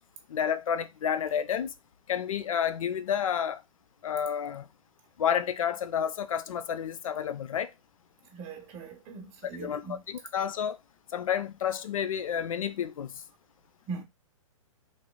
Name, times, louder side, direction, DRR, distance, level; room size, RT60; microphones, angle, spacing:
voice 1, 0.3-1.7 2.1-3.6 4.0-4.7 5.2-7.7 9.6-10.8 11.1-13.1, left 8 dB, 80° left, 0.4 m, -30 dB
voice 2, 8.3-10.0 13.9-14.0, right 4 dB, 35° right, 0.9 m, -40 dB
3.2 x 2.9 x 2.2 m
hypercardioid pair, 135°, 17 cm